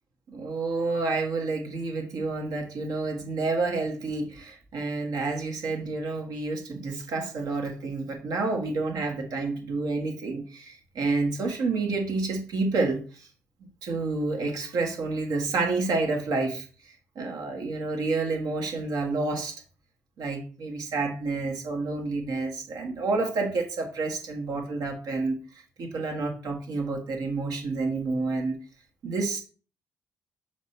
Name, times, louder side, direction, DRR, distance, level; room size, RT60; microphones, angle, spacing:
voice 1, 0.3-13.3 13.6-19.6 20.2-28.6 29.0-29.4, right 3 dB, 55° right, 1.5 m, -29 dB
7.0 x 3.3 x 4.2 m
figure-of-eight pair, 40°, 8 cm